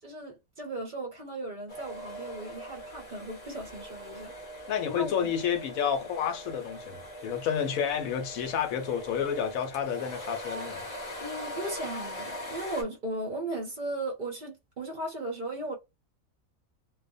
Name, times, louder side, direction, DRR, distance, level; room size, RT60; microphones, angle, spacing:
voice 1, 0.0-4.3 4.9-5.3 11.2-15.8, right 1 dB, 40° right, 0.8 m, -36 dB
sound 1, 1.7-12.8, equal, 30° left, 0.9 m, -41 dB
voice 2, 4.7-10.9, left 8 dB, 80° left, 1.0 m, -30 dB
2.4 x 2.1 x 2.6 m
omnidirectional pair, 1.5 m